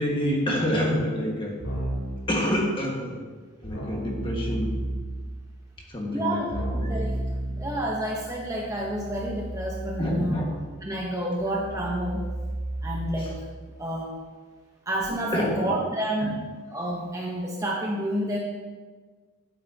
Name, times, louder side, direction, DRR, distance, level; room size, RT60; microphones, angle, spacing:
voice 1, 0.0-1.6 2.3-3.2 3.6-4.8 5.9-6.6 10.0-10.5 13.2-13.3 15.3-15.7 16.2-16.3, equal, 25° left, -1 dB, 1.6 m, -27 dB
Keyboard (musical), 1.6-2.2 3.7-5.3 6.5-13.5, right 1 dB, 75° left, 2.9 m, -33 dB
voice 2, 6.1-7.2 7.5-10.4 10.8-12.3 12.8-13.4 13.8-14.1 14.9-18.4, right 1 dB, 15° right, -2 dB, 0.9 m, -29 dB
12.5 x 8.6 x 2.8 m, 1.5 s
head